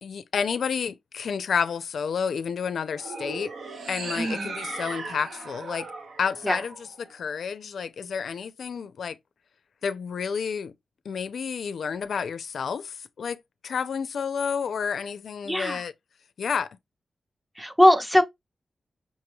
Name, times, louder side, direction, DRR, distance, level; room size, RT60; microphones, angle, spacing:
voice 1, 0.0-3.5 3.9-5.9 6.2-9.2 9.8-10.7 11.1-15.9 16.4-16.8, left 6 dB, 85° left, 0.4 m, -30 dB
sound 1, 2.9-7.3, right 3 dB, 90° right, 0.8 m, -37 dB
voice 2, 4.2-4.5 6.4-6.6 15.5-15.8 17.6-18.2, left 1 dB, 10° right, 0.6 m, -20 dB
5.4 x 2.2 x 3.0 m
wide cardioid pair, 175°, 0 cm